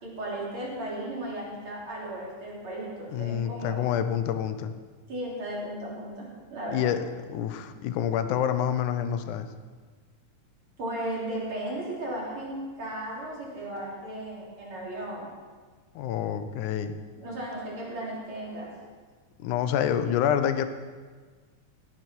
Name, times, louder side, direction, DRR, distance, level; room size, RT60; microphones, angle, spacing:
voice 1, 0.0-3.8 5.1-7.0 10.8-15.3 17.2-18.7, right 1 dB, 45° right, -5 dB, 4.1 m, -35 dB
voice 2, 3.1-4.7 6.7-7.0 7.3-9.5 16.0-17.0 19.4-20.7, left 9 dB, 85° left, 10 dB, 2.3 m, -27 dB
17.5 x 9.0 x 4.5 m, 1.5 s
omnidirectional pair, 3.4 m